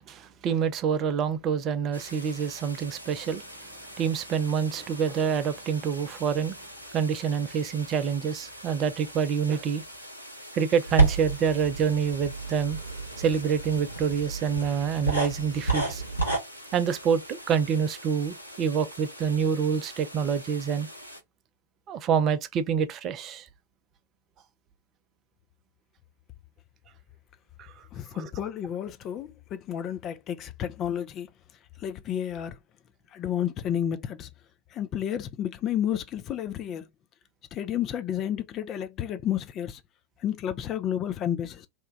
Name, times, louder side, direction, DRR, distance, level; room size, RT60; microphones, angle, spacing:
voice 1, 0.0-3.4 4.0-6.6 6.9-9.8 10.5-12.8 13.2-16.0 16.7-20.9 21.9-23.5 27.6-27.7 28.1-28.3, right 7 dB, 35° right, 0.5 m, -27 dB
sound 1, 1.9-21.2, equal, 90° right, 0.6 m, -45 dB
sound 2, 10.9-16.4, right 3 dB, 85° left, 1.3 m, -29 dB
voice 2, 27.9-31.3 31.8-32.6 33.1-34.3 34.7-36.9 37.5-39.8 40.2-41.7, left 10 dB, 30° left, 0.4 m, -31 dB
2.9 x 2.2 x 3.2 m
figure-of-eight pair, 90°, 0 cm